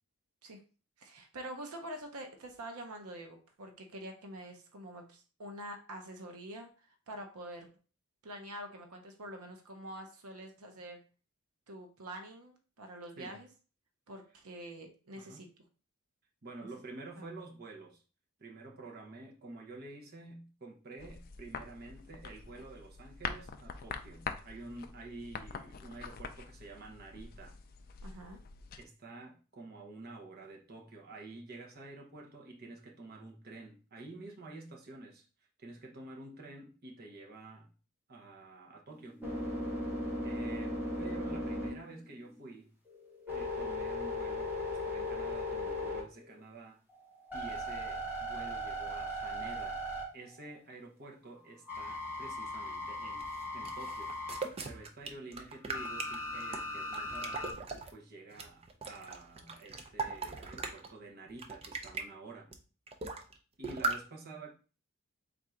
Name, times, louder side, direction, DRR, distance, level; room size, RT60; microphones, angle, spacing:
voice 1, 1.0-7.7 8.2-11.0 11.7-13.5 14.1-15.5 16.6-16.7 17.2-17.3 28.0-28.4, right 1 dB, 90° right, 4 dB, 0.7 m, -46 dB
voice 2, 15.1-15.5 16.4-18.0 18.4-27.6 28.8-35.3 35.6-37.7 38.1-39.2 40.2-42.7 43.3-46.8 47.3-49.8 50.1-53.3 53.5-54.1 54.6-57.6 57.9-62.5 63.6-64.8, right 3 dB, 45° right, 0 dB, 0.9 m, -49 dB
sound 1, 21.0-28.8, left 6 dB, 40° left, 0.3 m, -45 dB
sound 2, 38.9-42.4 42.9-46.4 46.9-50.6 51.7-54.4 55.7-57.5, left 1 dB, 10° right, 1.3 m, -38 dB
sound 3, 53.2-57.9 58.3-60.9 61.3-62.0 62.5-62.6 62.9-63.3 63.6-64.0, right 3 dB, 25° right, 0.4 m, -39 dB
3.7 x 2.5 x 4.3 m, 0.36 s
head